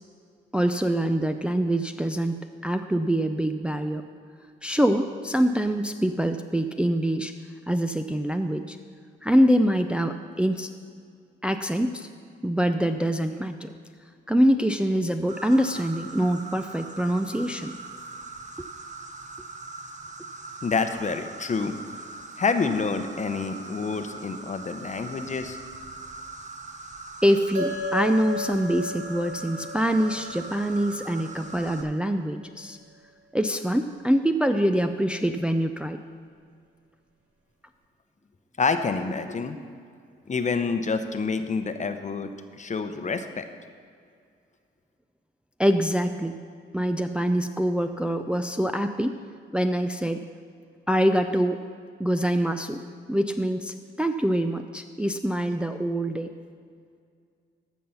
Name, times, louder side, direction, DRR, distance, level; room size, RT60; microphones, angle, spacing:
voice 1, 0.5-4.0 4.6-7.3 7.7-8.8 9.2-10.7 11.4-12.1 12.4-13.7 14.3-17.7 27.2-32.8 33.3-36.0 45.6-46.4 46.7-49.2 49.5-50.2 50.9-51.6 52.0-52.8 53.1-56.3, equal, 5° right, 6 dB, 0.5 m, -24 dB
Insect, 15.3-31.8, right 3 dB, 35° right, 1.1 m, -41 dB
voice 2, 20.6-21.7 22.4-25.6 38.6-39.6 40.3-42.3 42.6-43.5, left 4 dB, 35° left, 8 dB, 0.8 m, -27 dB
sound 1, 27.5-32.2, left 2 dB, 85° right, 1.7 m, -36 dB
14.5 x 5.5 x 5.7 m, 2.2 s
supercardioid pair, 60°, 21 cm